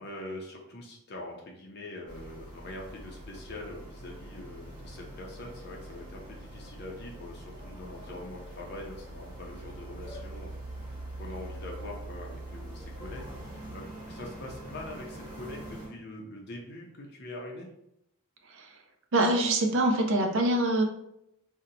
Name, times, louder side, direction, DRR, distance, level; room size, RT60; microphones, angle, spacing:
voice 1, 0.0-10.5 11.2-17.7, left 1 dB, 45° left, -1 dB, 0.5 m, -43 dB
sound 1, 2.1-15.9, right 1 dB, 15° right, 1.3 m, -43 dB
voice 2, 19.1-20.8, right 1 dB, 60° right, 2 dB, 0.5 m, -24 dB
2.7 x 2.1 x 3.8 m, 0.80 s
head